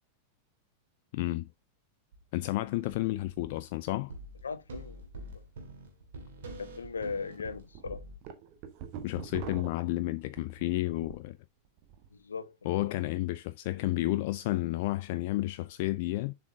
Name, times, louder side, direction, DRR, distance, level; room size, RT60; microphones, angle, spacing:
voice 1, 1.1-1.5 2.3-4.1 9.0-11.4 12.6-16.3, left 17 dB, 50° left, 0.3 m, -31 dB
sound 1, 2.1-2.2 2.6-3.7 4.1-8.2, right 2 dB, 60° right, 2.1 m, -46 dB
voice 2, 4.4-5.4 6.6-8.0 9.5-9.6 12.1-12.9, left 5 dB, 75° left, 0.7 m, -39 dB
sound 2, 5.7-5.8 6.2-6.3 6.8-7.0 7.5-11.3 11.7-12.1, right 8 dB, 45° right, 1.2 m, -44 dB
7.1 x 4.8 x 3.7 m
figure-of-eight pair, 90°, 0 cm